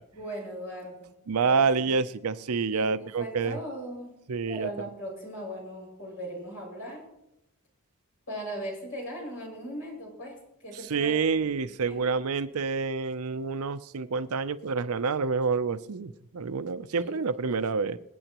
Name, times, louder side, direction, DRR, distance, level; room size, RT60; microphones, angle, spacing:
voice 1, 0.1-1.1 1.4-1.9 2.7-4.1 4.5-7.1 8.3-11.4 11.9-12.0 17.0-17.1, equal, 65° left, -1 dB, 5.9 m, -39 dB
voice 2, 1.3-3.6 4.3-4.7 10.9-18.0, right 5 dB, 80° right, 13 dB, 0.6 m, -28 dB
26.5 x 9.0 x 3.0 m, 0.83 s
head